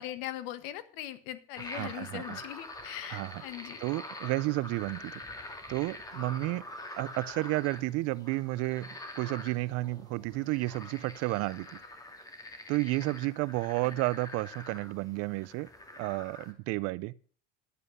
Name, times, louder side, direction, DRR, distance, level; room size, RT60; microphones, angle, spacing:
voice 1, 0.0-3.8 13.8-14.0, left 13 dB, 65° left, 1.5 m, -40 dB
sound 1, 1.5-16.5, left 1 dB, 10° left, 2.2 m, -45 dB
voice 2, 1.7-2.4 3.1-3.4 3.8-5.2 5.7-6.6 7.0-11.7 12.7-15.7 16.0-17.1, right 20 dB, 50° right, 0.5 m, -32 dB
11.0 x 8.4 x 6.8 m
supercardioid pair, 125°, 32 cm